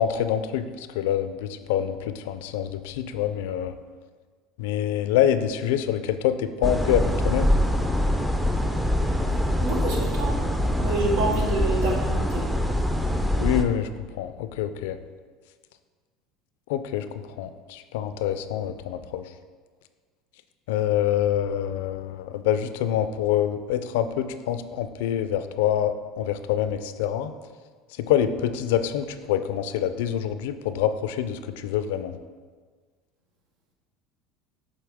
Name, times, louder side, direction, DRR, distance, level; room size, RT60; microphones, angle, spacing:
voice 1, 0.0-3.7 4.6-7.5 13.4-15.0 16.7-17.0 17.4-19.2 20.7-27.3 28.0-32.2, left 10 dB, 80° left, 11 dB, 0.4 m, -26 dB
sound 1, 6.6-13.6, equal, 5° right, 0.6 m, -24 dB
voice 2, 9.6-10.4 10.8-12.4, right 2 dB, 75° right, -1 dB, 1.5 m, -27 dB
7.7 x 4.0 x 3.5 m, 1.5 s
supercardioid pair, 95°, 0 cm